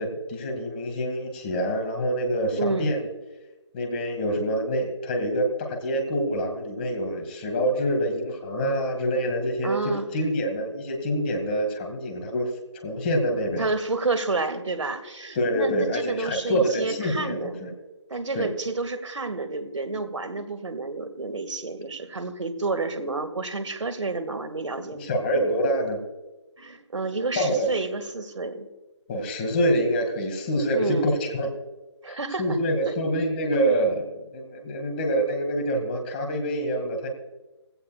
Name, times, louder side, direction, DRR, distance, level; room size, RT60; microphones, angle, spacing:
voice 1, 0.0-3.0 3.7-12.5 12.8-13.7 15.3-17.7 18.3-18.5 24.9-26.0 27.4-27.7 29.1-31.5 32.1-37.1, equal, 20° left, 3 dB, 2.1 m, -26 dB
voice 2, 2.6-2.9 9.6-10.1 13.6-17.5 18.1-25.1 26.6-28.7 30.7-31.1 32.0-32.6 32.9-33.0, right 3 dB, 85° right, 10 dB, 2.0 m, -30 dB
19.5 x 16.0 x 2.4 m, 1.1 s
figure-of-eight pair, 165°, 15 cm